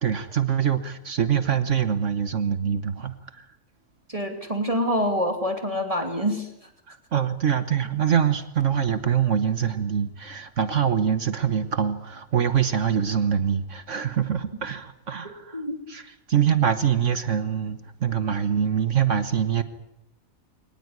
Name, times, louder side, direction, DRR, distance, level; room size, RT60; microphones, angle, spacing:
voice 1, 0.0-3.5 6.9-19.6, right 8 dB, 60° right, 11 dB, 1.5 m, -24 dB
voice 2, 4.1-6.5 15.2-15.8, equal, 25° right, 5 dB, 2.9 m, -26 dB
23.5 x 19.5 x 9.7 m, 0.82 s
omnidirectional pair, 1.5 m